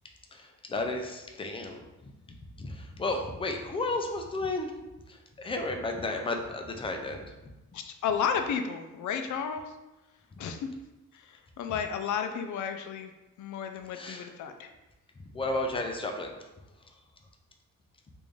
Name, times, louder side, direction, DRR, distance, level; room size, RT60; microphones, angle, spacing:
voice 1, 0.3-1.8 2.3-4.7 5.1-7.3 10.3-10.5 13.9-14.3 15.3-16.5, left 2 dB, 20° left, 3 dB, 0.3 m, -33 dB
voice 2, 7.7-9.7 10.4-10.6 11.3-13.1 13.4-14.7, left 7 dB, 80° left, 6 dB, 0.5 m, -32 dB
3.2 x 2.6 x 3.4 m, 1.0 s
wide cardioid pair, 150°, 29 cm